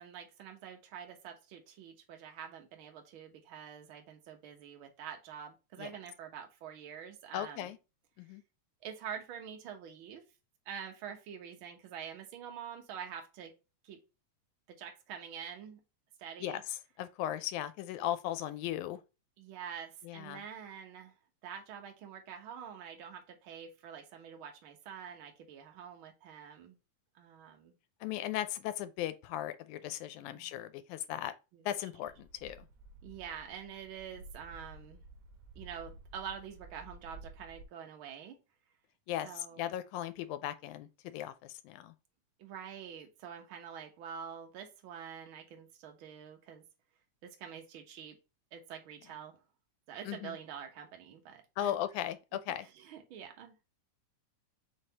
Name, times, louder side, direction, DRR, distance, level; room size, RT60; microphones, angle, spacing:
voice 1, 0.0-7.7 8.8-10.2 10.6-13.5 13.8-14.0 14.7-15.8 16.2-16.6 19.4-21.2 21.4-26.8 27.1-27.8 30.2-30.6 31.5-31.6 33.0-35.0 35.5-38.4 39.2-39.6 42.4-46.6 47.2-48.2 48.5-49.3 49.9-51.7 52.6-53.6, right 8 dB, 60° right, 1.4 m, -46 dB
voice 2, 7.3-7.8 8.2-8.4 16.4-19.0 20.0-20.4 28.0-31.3 31.7-32.7 39.1-41.9 50.1-50.4 51.6-52.7, left 12 dB, 85° left, 2.0 m, -37 dB
sound 1, 32.0-37.7, right 2 dB, 85° right, 2.2 m, -53 dB
5.7 x 3.3 x 2.8 m
omnidirectional pair, 3.4 m